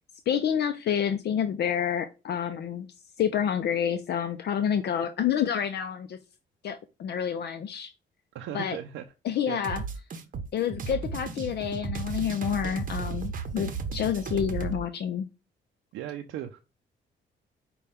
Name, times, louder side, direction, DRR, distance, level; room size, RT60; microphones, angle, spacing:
voice 1, 0.3-2.9 3.2-6.2 6.6-7.9 8.5-8.8 9.2-9.8 10.5-15.2, left 8 dB, 55° left, 9 dB, 0.5 m, -28 dB
voice 2, 8.3-9.1 9.5-9.6 15.9-16.6, right 10 dB, 80° right, 5 dB, 0.5 m, -36 dB
sound 1, 9.6-14.8, right 5 dB, 45° right, 0.8 m, -34 dB
5.4 x 2.3 x 3.3 m, 0.29 s
cardioid pair, 90°, 20 cm